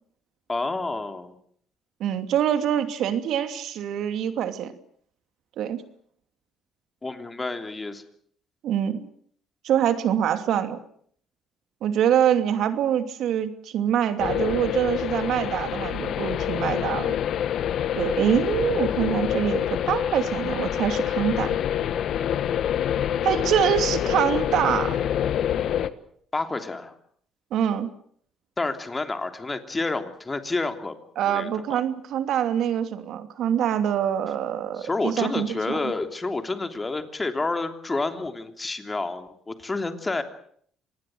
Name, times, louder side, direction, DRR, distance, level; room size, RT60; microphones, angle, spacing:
voice 1, 0.5-1.4 7.0-8.0 26.3-26.9 28.6-30.9 31.3-31.8 34.8-40.2, left 3 dB, 20° left, 7 dB, 3.2 m, -29 dB
voice 2, 2.0-4.7 5.6-5.8 8.6-9.0 9.6-10.8 11.8-17.1 18.0-21.6 23.2-25.0 27.5-27.9 31.2-35.9, right 9 dB, 70° right, 9 dB, 2.8 m, -25 dB
sound 1, 14.2-25.9, left 10 dB, 65° left, 1.5 m, -26 dB
26.0 x 20.0 x 7.9 m, 0.62 s
cardioid pair, 100°, 0 cm